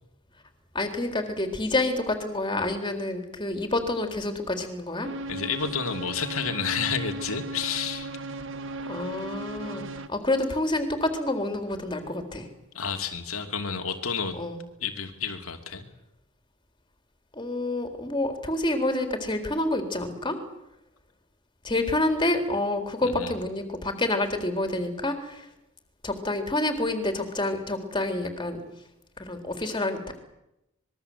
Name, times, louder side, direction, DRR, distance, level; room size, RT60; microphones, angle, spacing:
voice 1, 0.7-5.1 8.9-12.5 14.3-14.6 17.3-20.4 21.6-25.5 26.0-28.6 29.2-30.2, left 2 dB, 20° left, 6 dB, 3.9 m, -28 dB
sound 1, 5.0-10.1, right 2 dB, 60° right, 1.6 m, -36 dB
voice 2, 5.3-8.1 12.7-14.4 14.8-15.9 23.2-23.3, left 6 dB, 70° left, 5 dB, 2.7 m, -30 dB
25.5 x 22.0 x 8.1 m, 0.85 s
head